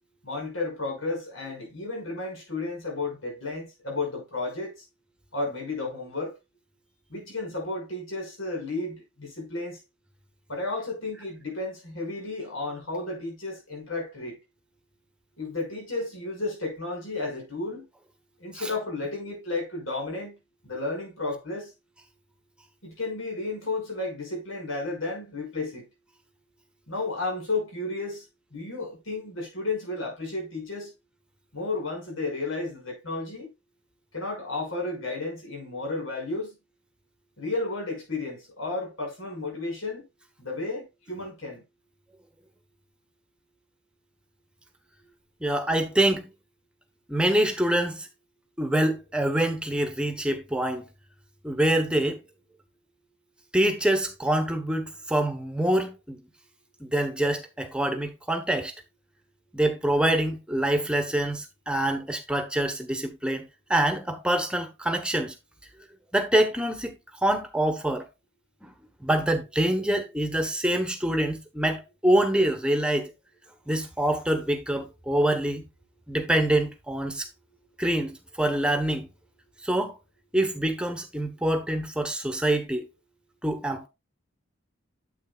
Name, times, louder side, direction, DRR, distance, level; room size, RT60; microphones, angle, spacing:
voice 1, 0.2-4.8 5.3-6.3 7.1-9.8 10.5-14.4 15.4-17.9 18.4-20.4 20.6-21.7 22.8-25.9 26.9-28.2 28.5-30.9 31.5-33.5 34.1-36.6 37.4-40.1 40.4-41.6, left 3 dB, 85° left, 5.9 m, -32 dB
voice 2, 45.4-46.3 47.1-48.1 48.6-50.9 51.4-52.2 53.5-56.2 56.8-58.7 59.5-65.3 66.1-68.1 68.6-68.7 69.0-73.1 73.7-75.6 76.1-77.3 77.8-79.1 79.6-80.0 80.3-82.8 83.4-83.9, right 1 dB, 5° right, 1.1 m, -25 dB
9.3 x 7.9 x 2.4 m
head